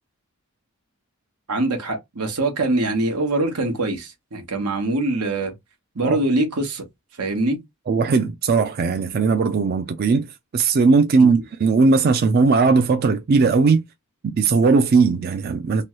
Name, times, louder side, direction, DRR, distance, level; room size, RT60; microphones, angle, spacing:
voice 1, 1.5-5.5 5.9-6.8 7.2-7.6 11.1-11.3, right 2 dB, 90° right, 1.1 m, -23 dB
voice 2, 7.9-10.3 10.5-13.8 14.2-15.8, right 4 dB, 45° right, 0.3 m, -18 dB
3.0 x 2.2 x 3.0 m
head